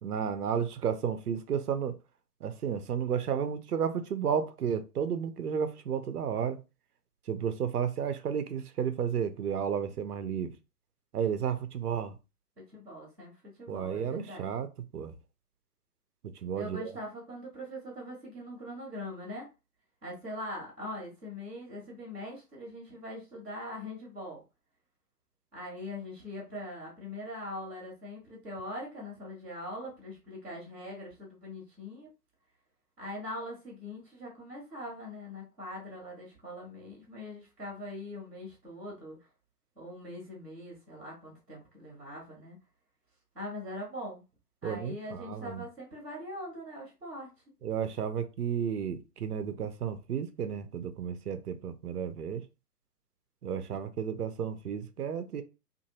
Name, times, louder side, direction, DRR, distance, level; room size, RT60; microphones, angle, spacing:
voice 1, 0.0-2.0 2.4-6.6 7.3-10.5 11.1-12.2 13.7-14.7 14.9-15.2 16.2-16.9 44.6-45.6 47.6-52.5 53.4-55.4, right 8 dB, 70° right, 0.6 m, -32 dB
voice 2, 12.6-14.5 16.5-19.5 20.0-24.4 25.5-32.1 33.0-39.2 39.8-42.6 43.3-44.2 44.6-47.3, left 1 dB, 5° right, 0.4 m, -42 dB
2.6 x 2.5 x 2.8 m
figure-of-eight pair, 125°, 48 cm